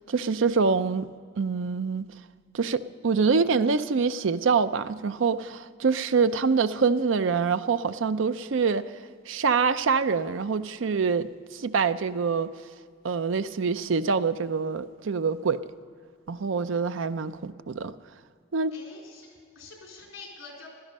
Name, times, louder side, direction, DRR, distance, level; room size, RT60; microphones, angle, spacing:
voice 1, 0.1-1.1 1.4-2.1 2.5-8.8 9.3-12.5 13.0-15.6 16.3-17.9 18.5-18.7, right 5 dB, 70° right, 13 dB, 0.5 m, -25 dB
voice 2, 18.7-20.7, left 3 dB, 75° left, -1 dB, 3.9 m, -46 dB
16.0 x 12.0 x 5.4 m, 2.1 s
head